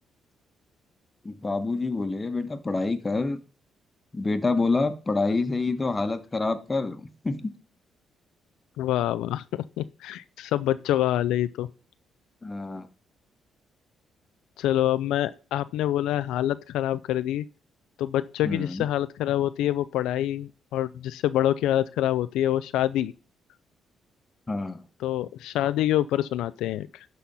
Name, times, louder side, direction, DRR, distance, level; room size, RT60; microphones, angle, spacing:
voice 1, 1.2-3.4 4.1-7.5 12.4-12.9 18.4-18.8 24.5-24.8, left 3 dB, 25° left, 1.2 m, -27 dB
voice 2, 8.8-9.4 9.8-11.7 14.6-17.4 18.0-23.1 25.0-27.0, left 12 dB, 90° left, 0.4 m, -26 dB
12.0 x 4.2 x 5.5 m
cardioid pair, 90°, 0 cm